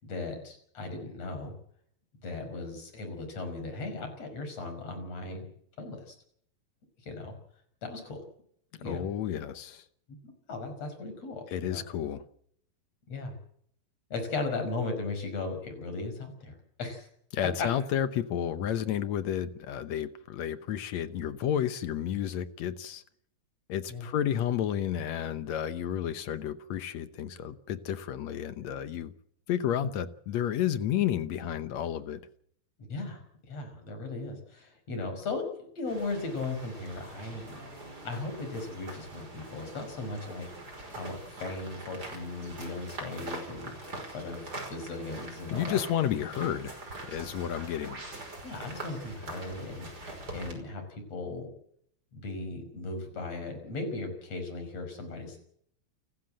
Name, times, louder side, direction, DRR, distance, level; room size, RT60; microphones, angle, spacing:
voice 1, 0.0-1.5 2.2-5.5 5.8-6.1 7.1-7.3 7.8-8.2 8.8-9.1 10.2-11.8 13.1-13.3 14.1-17.1 17.6-17.7 23.9-24.1 32.8-33.2 33.5-35.4 35.8-45.8 48.4-49.9 50.3-51.5 52.1-55.4, left 3 dB, 45° left, 6.4 m, -37 dB
voice 2, 8.9-9.9 11.5-12.2 17.3-23.0 23.7-29.1 29.5-32.2 45.5-46.7 47.1-48.0, left 10 dB, 70° left, 1.7 m, -31 dB
sound 1, 35.9-50.5, right 2 dB, 25° right, 5.8 m, -43 dB
29.0 x 13.5 x 7.7 m
omnidirectional pair, 4.3 m